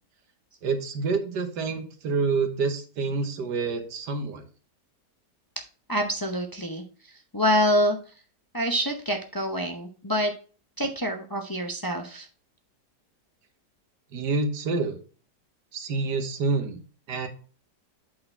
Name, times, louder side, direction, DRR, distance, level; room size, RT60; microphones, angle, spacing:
voice 1, 0.6-4.4 14.1-15.0 15.7-16.8 17.1-17.3, right 4 dB, 70° right, 7 dB, 1.7 m, -27 dB
voice 2, 5.9-8.0 8.5-10.3 10.8-12.3, equal, 30° left, 3 dB, 0.4 m, -26 dB
8.4 x 4.2 x 4.4 m, 0.39 s
omnidirectional pair, 1.9 m